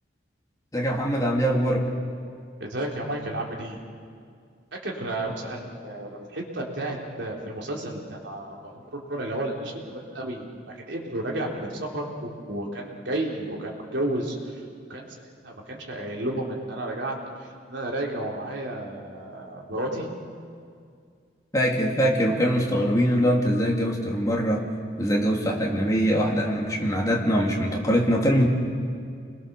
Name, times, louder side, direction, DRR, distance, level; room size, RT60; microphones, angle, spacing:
voice 1, 0.7-1.9 21.5-24.6 25.0-28.5, equal, 20° left, -2 dB, 2.9 m, -23 dB
voice 2, 2.6-3.8 4.7-20.1, right 1 dB, 70° right, -1 dB, 3.8 m, -32 dB
29.5 x 21.5 x 7.0 m, 2.2 s
head